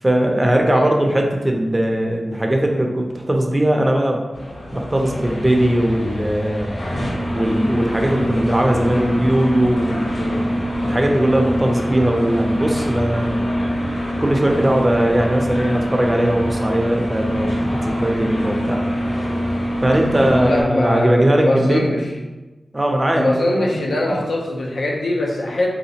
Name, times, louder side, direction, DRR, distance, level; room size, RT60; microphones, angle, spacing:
voice 1, 0.0-4.2 4.7-6.7 7.3-10.5 10.8-13.4 14.2-18.8 19.8-21.9 22.7-23.7 24.1-24.2, right 1 dB, 20° right, 2 dB, 0.5 m, -19 dB
sound 1, 4.3-20.6, equal, 60° left, 1.2 m, -24 dB
voice 2, 20.3-22.1 23.1-25.7, left 1 dB, 90° left, -1 dB, 0.6 m, -21 dB
3.6 x 2.8 x 2.8 m, 1.1 s
wide cardioid pair, 70°, 0 cm